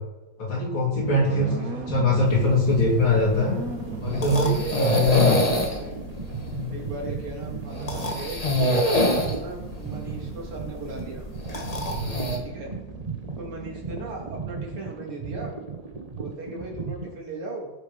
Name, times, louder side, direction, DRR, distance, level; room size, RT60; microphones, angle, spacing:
voice 1, 0.4-3.6 4.0-4.5 4.8-5.4 6.5-6.7 12.0-12.3, left 2 dB, 70° left, -3 dB, 4.3 m, -22 dB
sound 1, 0.9-14.4, right 3 dB, 45° right, 1.5 m, -40 dB
sound 2, 1.0-17.1, right 5 dB, 25° right, 0.8 m, -36 dB
voice 2, 1.1-1.7 4.2-6.0 6.7-8.4 9.3-11.3 12.4-12.7 13.4-15.6 16.2-17.7, right 2 dB, 85° right, -1 dB, 3.7 m, -37 dB
sound 3, 2.3-12.4, equal, 20° left, 1.5 m, -27 dB
17.5 x 7.2 x 5.4 m, 1.1 s
omnidirectional pair, 2.4 m